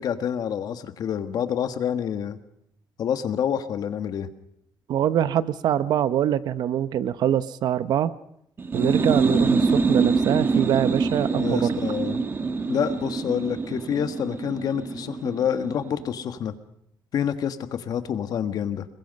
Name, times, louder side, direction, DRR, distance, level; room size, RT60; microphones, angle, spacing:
voice 1, 0.0-2.4 3.0-4.3 11.3-16.5 17.1-18.9, left 8 dB, 55° left, 10 dB, 1.5 m, -28 dB
voice 2, 4.9-8.1 8.7-11.7, right 10 dB, 65° right, 15 dB, 0.9 m, -24 dB
sound 1, 8.6-16.1, right 4 dB, 25° right, 1.3 m, -25 dB
27.0 x 22.0 x 5.4 m, 0.73 s
cardioid pair, 145°, 8 cm